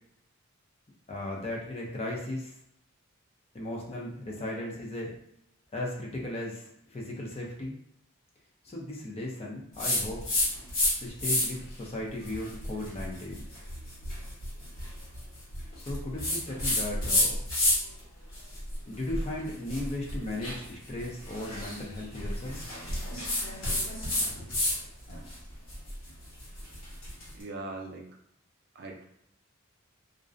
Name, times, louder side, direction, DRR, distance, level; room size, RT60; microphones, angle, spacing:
voice 1, 1.1-2.5 3.5-5.1 5.7-7.8 8.6-10.2 11.0-13.4 15.8-17.4 18.9-22.6, left 1 dB, 30° left, -2 dB, 0.5 m, -36 dB
sound 1, 9.8-10.9 11.2-11.7 12.2-18.0 18.3-24.8 25.1-27.3, left 1 dB, 90° left, 1.1 m, -30 dB
voice 2, 27.3-28.0 28.7-29.0, right 2 dB, 50° right, 1 dB, 0.4 m, -40 dB
2.4 x 2.0 x 2.4 m, 0.74 s
head